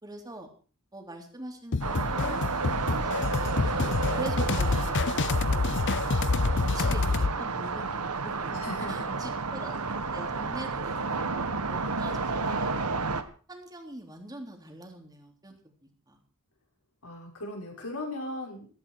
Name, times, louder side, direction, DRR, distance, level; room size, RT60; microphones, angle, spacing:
voice 1, 0.0-0.5 0.9-2.4 2.9-6.0 6.7-8.5 8.9-12.9 13.5-16.2, right 1 dB, 20° right, 3 dB, 3.4 m, -44 dB
sound 1, 1.7-7.3, left 4 dB, 55° left, 0.7 m, -27 dB
Ambience Highway Motel Car Helicopter Motorcycle, 1.8-13.2, right 4 dB, 85° right, 1.5 m, -31 dB
voice 2, 6.1-6.7 8.5-9.2 17.0-18.7, left 1 dB, 75° left, -1 dB, 6.1 m, -38 dB
16.0 x 15.0 x 4.8 m, 0.40 s
head